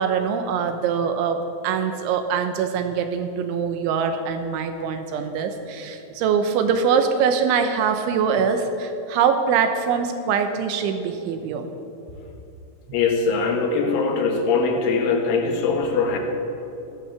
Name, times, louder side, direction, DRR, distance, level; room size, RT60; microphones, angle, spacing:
voice 1, 0.0-11.7, right 6 dB, 80° right, 7 dB, 3.0 m, -23 dB
voice 2, 12.9-16.2, left 4 dB, 75° left, 2 dB, 4.0 m, -21 dB
15.5 x 12.0 x 7.1 m, 2.8 s
omnidirectional pair, 5.8 m